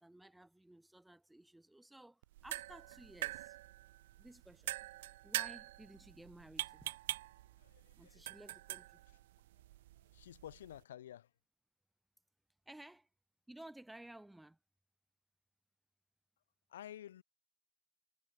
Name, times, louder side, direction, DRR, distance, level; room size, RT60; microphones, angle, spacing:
voice 1, 0.0-3.6 4.2-4.7 5.2-7.0 8.0-9.0 12.6-13.1 13.5-14.6, right 1 dB, 5° right, 1.5 m, -56 dB
sound 1, 2.2-10.8, right 16 dB, 55° right, 1.3 m, -45 dB
voice 2, 7.6-8.4 10.1-11.3 16.7-17.2, left 11 dB, 75° left, 1.6 m, -52 dB
supercardioid pair, 160°, 0 cm